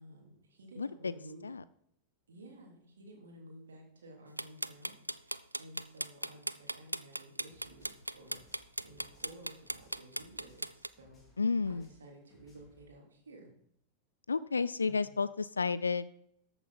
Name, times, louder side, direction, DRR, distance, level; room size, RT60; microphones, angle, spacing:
voice 1, 0.0-1.5 2.3-11.2 11.7-13.5 14.8-15.1, right 1 dB, 70° right, 0 dB, 3.3 m, -54 dB
voice 2, 0.8-1.1 1.4-1.6 11.4-11.9 14.3-16.0, left 4 dB, 75° left, 17 dB, 0.4 m, -31 dB
sound 1, 4.4-10.9, right 1 dB, 85° right, 0.4 m, -37 dB
sound 2, 7.5-12.8, left 1 dB, 20° left, 3.4 m, -64 dB
13.5 x 7.9 x 4.2 m, 0.72 s
figure-of-eight pair, 90°, 0 cm